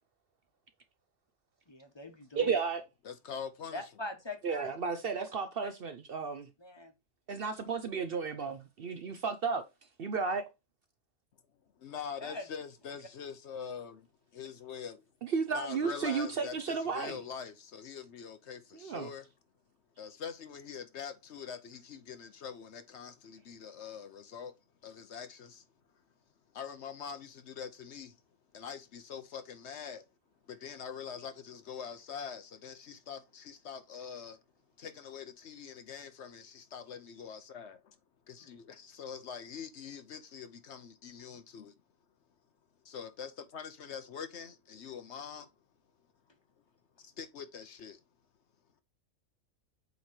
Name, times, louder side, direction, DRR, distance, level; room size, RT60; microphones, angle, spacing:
voice 1, 1.7-2.6 3.7-4.7 5.1-5.3 5.6-5.7 6.6-6.9 9.0-9.2 12.2-12.5, left 2 dB, 20° left, 1.1 m, -43 dB
voice 2, 2.4-2.8 4.4-6.5 7.3-9.6 10.0-10.4 15.2-17.2 18.8-19.1, right 5 dB, 55° right, 0.7 m, -33 dB
voice 3, 3.0-3.8 11.8-14.1 14.3-15.0 15.5-19.3 20.0-24.6 24.8-25.6 26.5-28.2 28.5-30.1 30.5-34.4 34.8-38.0 38.3-41.7 42.8-45.5 47.0-48.0, left 7 dB, 65° left, 1.0 m, -44 dB
8.0 x 3.2 x 4.3 m
omnidirectional pair, 1.3 m